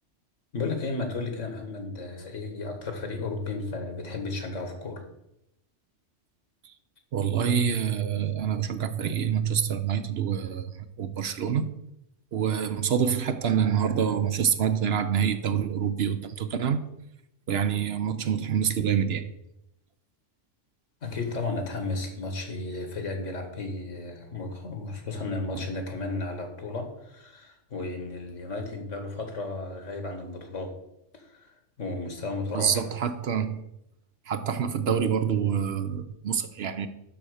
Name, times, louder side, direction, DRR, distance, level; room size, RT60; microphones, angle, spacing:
voice 1, 0.5-5.0 21.0-30.7 31.1-32.8, left 3 dB, 80° left, 5 dB, 2.0 m, -34 dB
voice 2, 7.1-11.7 12.3-16.9 17.5-19.2 25.5-25.6 32.5-33.6 34.3-36.9, right 8 dB, 60° right, 10 dB, 0.9 m, -26 dB
12.0 x 4.4 x 6.4 m, 0.85 s
omnidirectional pair, 1.3 m